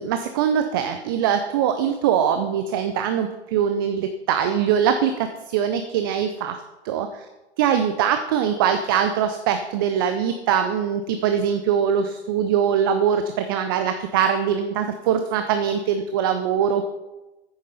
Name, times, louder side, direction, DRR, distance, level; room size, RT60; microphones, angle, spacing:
voice 1, 0.0-7.3 7.6-16.9, right 8 dB, 20° right, 8 dB, 0.4 m, -22 dB
9.5 x 8.1 x 5.5 m, 1.1 s
figure-of-eight pair, 120°, 34 cm